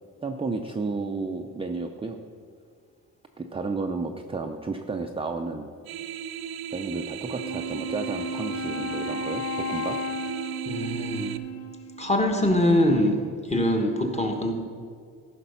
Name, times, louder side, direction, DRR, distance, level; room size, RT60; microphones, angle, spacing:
voice 1, 0.2-2.2 3.4-5.7 6.7-10.0, right 3 dB, 15° right, 3 dB, 0.5 m, -32 dB
sound 1, 5.8-11.4, right 8 dB, 90° right, 0.6 m, -36 dB
Wind instrument woodwind instrument, 7.3-12.2, left 1 dB, 40° left, 0.8 m, -34 dB
voice 2, 10.7-11.3 12.0-13.2 13.5-14.5, left 1 dB, 20° left, 2 dB, 1.4 m, -23 dB
14.5 x 5.9 x 5.6 m, 2.2 s
cardioid pair, 130°, 36 cm